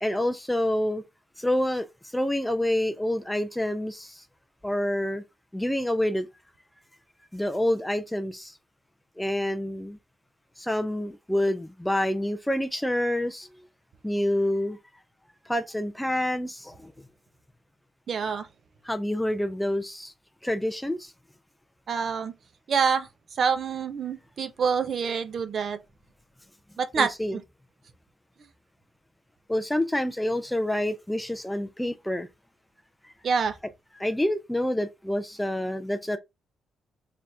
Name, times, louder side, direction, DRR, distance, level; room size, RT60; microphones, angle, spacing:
voice 1, 0.0-1.0 1.4-4.2 4.6-5.2 5.5-6.3 7.3-8.6 9.2-10.0 10.6-13.5 14.0-14.8 15.5-16.9 18.8-20.1 20.4-21.1 27.0-27.4 29.5-32.3 33.0-33.1 34.0-36.2, left 1 dB, 5° left, 0.3 m, -27 dB
voice 2, 18.1-18.5 21.9-22.3 22.7-23.1 23.4-25.8 26.8-27.1 33.2-33.6, right 6 dB, 45° right, 0.5 m, -26 dB
3.3 x 2.4 x 4.2 m
cardioid pair, 150°, 0 cm